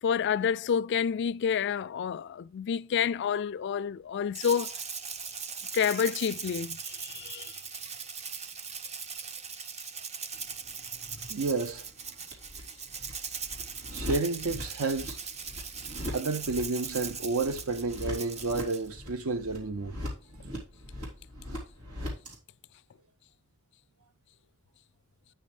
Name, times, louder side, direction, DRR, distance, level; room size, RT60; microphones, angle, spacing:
voice 1, 0.0-4.7 5.7-7.6, left 7 dB, 50° left, 0.3 m, -29 dB
Rattle (instrument), 4.3-18.9, right 6 dB, 30° right, 0.6 m, -40 dB
sound 1, 10.3-22.3, left 1 dB, 85° right, 3.5 m, -42 dB
voice 2, 11.3-11.9 13.9-15.2 16.1-20.0, right 3 dB, 65° right, 0.6 m, -31 dB
9.0 x 6.2 x 3.3 m
head